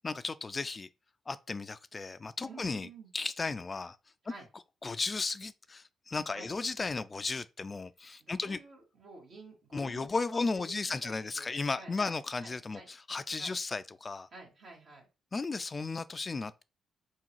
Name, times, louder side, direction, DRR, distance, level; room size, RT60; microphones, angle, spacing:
voice 1, 0.0-0.9 1.3-2.9 3.1-4.0 4.3-4.4 4.8-8.6 9.7-14.3 15.3-16.6, left 3 dB, 35° left, 0.3 m, -35 dB
voice 2, 2.4-3.1 4.2-4.5 6.3-6.5 8.2-12.9 13.4-13.5 14.3-15.1, right 3 dB, 65° right, 1.8 m, -51 dB
4.0 x 3.7 x 3.0 m
hypercardioid pair, 45°, 0 cm